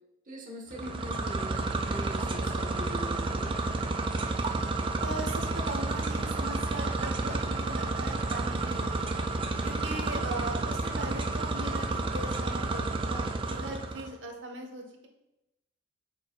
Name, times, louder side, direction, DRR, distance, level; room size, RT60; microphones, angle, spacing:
voice 1, 0.3-3.6, equal, 40° right, 0 dB, 1.2 m, -42 dB
sound 1, 0.7-14.1, right 3 dB, 25° right, 0.4 m, -31 dB
voice 2, 5.0-9.1 9.6-15.1, right 2 dB, 70° right, 3 dB, 1.1 m, -39 dB
8.0 x 5.2 x 2.3 m, 0.92 s
head